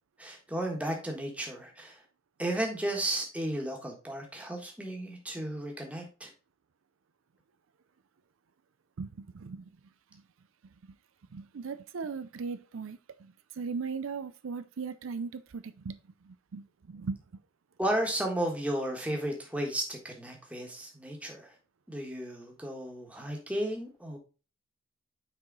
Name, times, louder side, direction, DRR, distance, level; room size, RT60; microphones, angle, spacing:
voice 1, 0.2-2.0 2.4-6.3 17.8-21.5 21.9-24.2, right 1 dB, 5° right, 1.4 m, -34 dB
voice 2, 9.0-9.7 10.1-10.2 11.3-16.0 16.2-17.2, right 5 dB, 85° right, 0.5 m, -38 dB
6.1 x 4.8 x 3.9 m
head